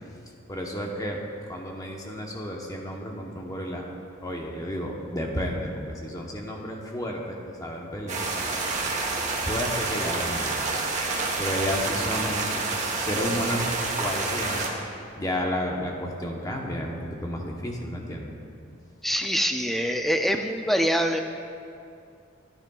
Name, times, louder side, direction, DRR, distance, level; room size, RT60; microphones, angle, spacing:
voice 1, 0.5-1.2 1.5-3.8 4.2-8.3 9.5-10.6 11.4-12.6 13.0-13.7 14.0-14.7 15.2-18.3, equal, 15° left, -1 dB, 0.9 m, -31 dB
sound 1, 8.1-14.7, right 3 dB, 35° right, 1.1 m, -28 dB
voice 2, 19.0-21.2, equal, ahead, 5 dB, 0.4 m, -24 dB
13.5 x 9.7 x 2.4 m, 2.4 s
head